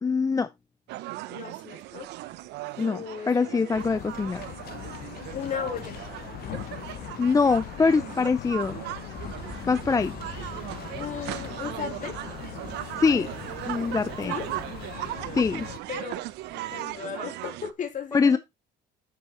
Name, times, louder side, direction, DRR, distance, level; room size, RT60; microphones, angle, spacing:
voice 1, 0.0-0.5 2.8-4.4 7.2-8.8 9.7-10.1 13.0-13.3 13.6-14.3 15.3-15.7 18.1-18.4, left 4 dB, 20° left, 0.5 m, -23 dB
sound 1, 0.9-17.7, right 16 dB, 85° right, 0.8 m, -38 dB
voice 2, 1.3-2.1 2.8-3.9 5.3-6.0 11.0-12.2 14.2-14.5 15.9-16.2 16.5-18.4, left 7 dB, 50° left, 2.9 m, -36 dB
sound 2, 3.7-15.8, left 12 dB, 65° left, 0.8 m, -40 dB
sound 3, 9.1-17.0, right 3 dB, 30° right, 1.7 m, -47 dB
8.7 x 6.8 x 4.4 m
cardioid pair, 110°, 17 cm